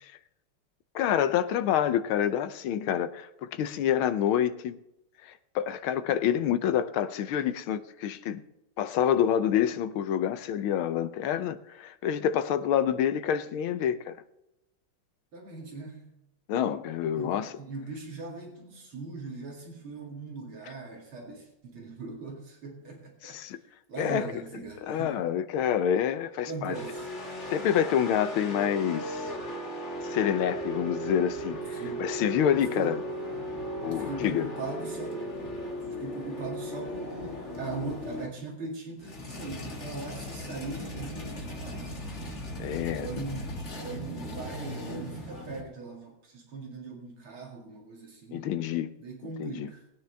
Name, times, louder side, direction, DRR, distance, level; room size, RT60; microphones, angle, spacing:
voice 1, 0.9-4.8 5.2-8.4 8.8-14.2 16.5-17.5 23.2-23.6 24.0-24.3 24.8-26.7 27.5-29.3 30.1-33.0 33.8-34.5 42.6-43.1 48.3-48.9 49.2-49.7, left 9 dB, 80° left, 1.6 m, -27 dB
voice 2, 15.3-16.1 17.1-23.6 23.9-25.2 26.5-27.1 31.7-32.0 32.5-32.9 33.9-35.2 36.0-42.1 43.0-48.5 49.0-49.8, right 3 dB, 80° right, 3.3 m, -40 dB
sound 1, 26.7-38.3 39.0-45.6, equal, 35° left, 2.1 m, -37 dB
20.0 x 9.7 x 3.4 m
omnidirectional pair, 2.3 m